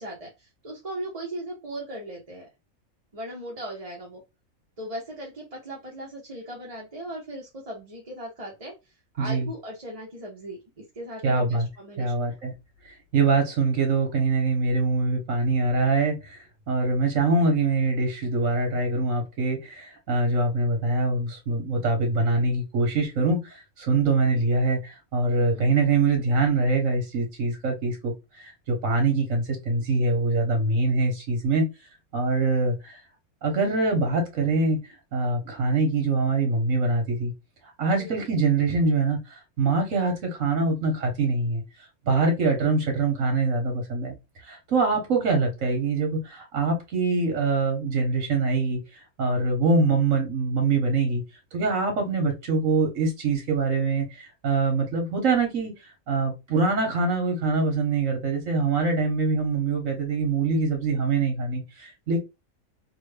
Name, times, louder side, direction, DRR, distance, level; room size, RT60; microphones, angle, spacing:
voice 1, 0.0-2.5 3.1-4.2 4.8-8.7 9.2-10.6 10.9-12.1 25.4-25.8 38.0-38.2, right 1 dB, 30° right, 0.8 m, -38 dB
voice 2, 9.2-9.5 11.2-11.7 12.0-12.5 13.1-16.4 16.7-31.7 32.1-33.0 33.4-34.8 35.1-37.3 37.8-39.2 39.6-41.6 42.1-44.1 44.5-48.8 49.2-51.2 51.5-55.7 56.1-62.2, right 3 dB, 70° right, 1.6 m, -24 dB
3.5 x 2.2 x 3.3 m
omnidirectional pair, 1.4 m